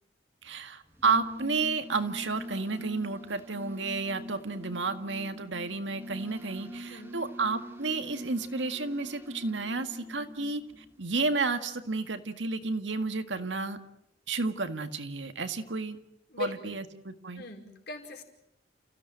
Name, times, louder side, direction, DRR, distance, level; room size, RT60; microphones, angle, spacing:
voice 1, 0.4-10.6 11.0-13.8 14.3-16.0 16.4-17.4, right 4 dB, 80° right, 8 dB, 1.9 m, -31 dB
Dartmouth Noon Whistle, 0.8-11.3, equal, 15° right, 1.6 m, -44 dB
voice 2, 16.3-16.8 17.3-18.2, left 3 dB, 60° left, 2 dB, 4.9 m, -39 dB
30.0 x 16.0 x 9.1 m, 0.80 s
head